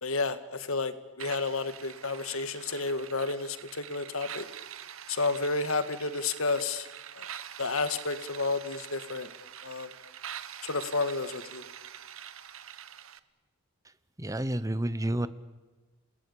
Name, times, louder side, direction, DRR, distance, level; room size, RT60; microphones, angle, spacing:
voice 1, 0.0-4.4 5.1-6.9 7.2-7.3 7.6-9.3 9.6-9.9 10.6-11.7, left 3 dB, 70° left, 11 dB, 1.7 m, -31 dB
sound 1, 1.2-13.2, right 9 dB, 65° right, 1.1 m, -45 dB
voice 2, 14.2-15.3, right 1 dB, 15° right, 14 dB, 0.9 m, -29 dB
28.5 x 18.5 x 8.6 m, 1.2 s
head